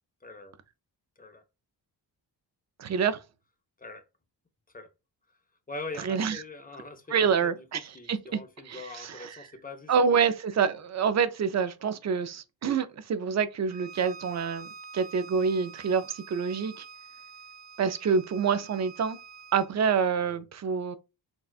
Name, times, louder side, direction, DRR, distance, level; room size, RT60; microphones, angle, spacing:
voice 1, 0.2-0.6 1.2-1.4 3.8-4.1 4.7-4.9 5.7-10.3 20.2-20.4, left 3 dB, 20° left, 0.5 m, -43 dB
voice 2, 2.8-3.2 6.0-6.4 7.1-7.8 8.1-8.2 8.7-9.1 9.9-14.7 14.9-16.8 17.8-19.2 19.5-21.0, right 6 dB, 40° right, 0.4 m, -27 dB
Bowed string instrument, 13.7-19.7, right 5 dB, 80° right, 0.7 m, -47 dB
4.1 x 2.3 x 2.3 m
wide cardioid pair, 115°, 43 cm